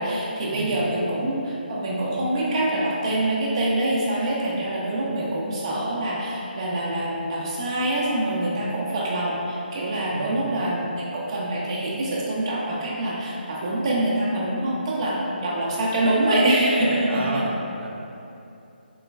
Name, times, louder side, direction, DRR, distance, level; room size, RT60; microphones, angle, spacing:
voice 1, 0.0-17.4, right 1 dB, 30° right, -6 dB, 0.4 m, -25 dB
voice 2, 10.1-10.6 17.1-17.9, right 1 dB, 85° right, -1 dB, 0.5 m, -32 dB
3.4 x 3.0 x 2.3 m, 2.7 s
hypercardioid pair, 165°, 6 cm